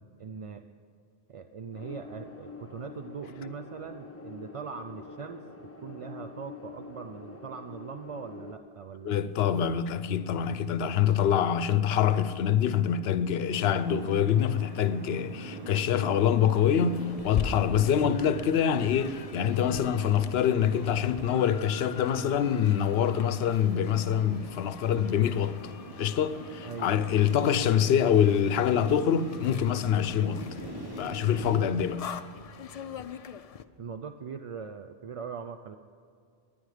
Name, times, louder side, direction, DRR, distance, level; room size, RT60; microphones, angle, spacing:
voice 1, 0.2-0.7 1.3-5.4 5.8-9.3 26.6-26.9 31.4-31.8 33.8-35.8, right 6 dB, 55° right, 0.4 m, -41 dB
sound 1, 1.7-8.6, left 4 dB, 15° left, 0.9 m, -46 dB
voice 2, 9.0-25.6 26.0-30.4 31.0-32.0, left 9 dB, 80° left, 0.8 m, -25 dB
sound 2, 13.5-31.6, right 1 dB, 25° right, 1.2 m, -43 dB
sound 3, 16.5-33.6, left 7 dB, 50° left, 0.4 m, -43 dB
18.5 x 10.5 x 4.9 m
omnidirectional pair, 1.1 m